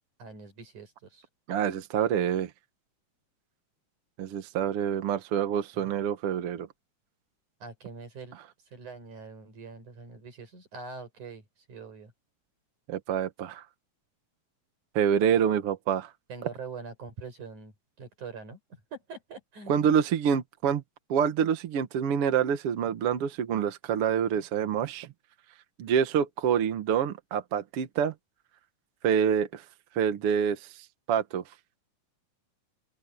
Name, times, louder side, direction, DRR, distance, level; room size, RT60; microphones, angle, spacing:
voice 1, 0.2-1.2 5.7-6.0 7.6-8.3 8.7-12.1 16.3-17.7 18.0-19.8, right 4 dB, 75° right, 7.7 m, -44 dB
voice 2, 1.5-2.5 4.2-6.7 12.9-13.6 15.0-16.1 19.7-20.8 21.1-25.1 25.8-28.1 29.0-29.6 30.0-30.6 31.1-31.4, right 8 dB, 55° right, 2.0 m, -26 dB
open air
omnidirectional pair, 3.5 m